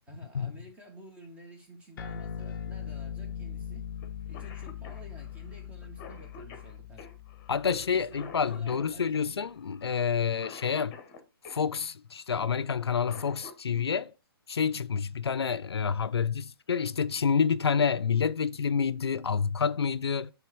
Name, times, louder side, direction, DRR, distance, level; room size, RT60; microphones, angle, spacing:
voice 1, 0.1-3.9 4.2-7.1 7.6-9.4, right 1 dB, 10° right, 1.6 m, -51 dB
sound 1, 2.0-8.8, left 8 dB, 55° left, 0.7 m, -41 dB
Cough, 4.0-4.1 4.3-11.6 12.8-13.8 15.5-15.6 16.6-16.9 17.3-17.4 17.8-18.3, left 5 dB, 30° left, 1.2 m, -49 dB
voice 2, 7.5-11.0 11.5-14.1 14.5-20.3, left 6 dB, 90° left, 0.4 m, -28 dB
7.2 x 3.4 x 4.7 m
hypercardioid pair, 135°, 13 cm